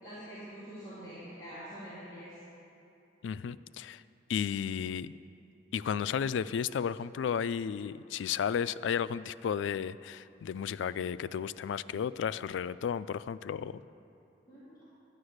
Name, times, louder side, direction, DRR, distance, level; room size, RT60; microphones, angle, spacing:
voice 1, 0.0-2.4 14.5-14.8, equal, 20° left, -14 dB, 3.3 m, -45 dB
voice 2, 3.2-4.0 4.3-5.1 5.7-13.8, left 7 dB, 90° left, 16 dB, 0.3 m, -33 dB
11.5 x 10.5 x 6.5 m, 2.7 s
head